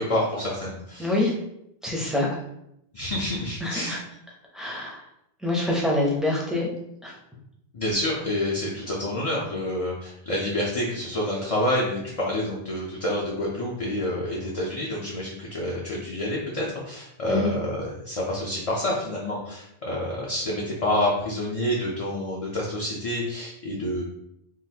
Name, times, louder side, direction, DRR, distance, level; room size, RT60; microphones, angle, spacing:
voice 1, 0.0-1.1 2.9-4.0 7.7-24.0, left 1 dB, 40° left, -4 dB, 0.6 m, -28 dB
voice 2, 1.0-1.3 1.8-2.3 3.6-4.0 4.5-5.1 5.4-6.7 7.0-7.1 17.3-17.5, left 2 dB, ahead, -4 dB, 0.7 m, -25 dB
3.8 x 2.6 x 2.8 m, 0.79 s
omnidirectional pair, 1.1 m